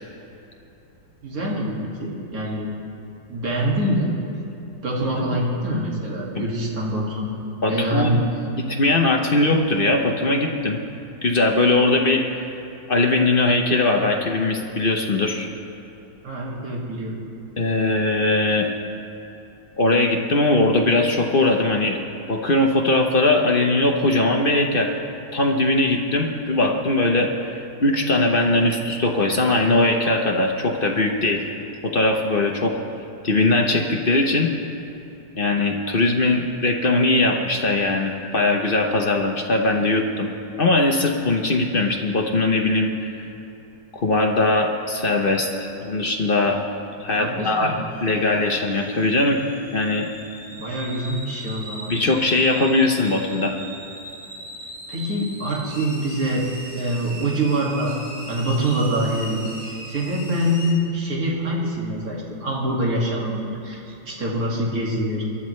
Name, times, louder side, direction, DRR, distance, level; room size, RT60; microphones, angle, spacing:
voice 1, 1.2-2.7 3.3-4.1 4.8-7.3 7.7-8.2 16.2-17.2 47.2-47.8 50.5-51.9 54.9-58.0 58.3-65.2, right 1 dB, 50° right, -3 dB, 2.5 m, -25 dB
voice 2, 7.6-8.1 8.7-10.8 11.2-12.2 12.9-15.5 17.6-18.7 19.8-22.0 22.3-24.9 25.3-27.5 27.8-31.5 31.8-32.7 33.2-34.5 35.3-40.3 40.6-43.2 44.0-46.6 47.0-47.7 48.0-49.4 49.7-50.1 51.9-53.5, left 2 dB, 50° left, 1 dB, 0.6 m, -20 dB
sound 1, 47.9-60.7, equal, 65° right, 3.9 m, -39 dB
23.0 x 12.5 x 3.2 m, 3.0 s
omnidirectional pair, 2.0 m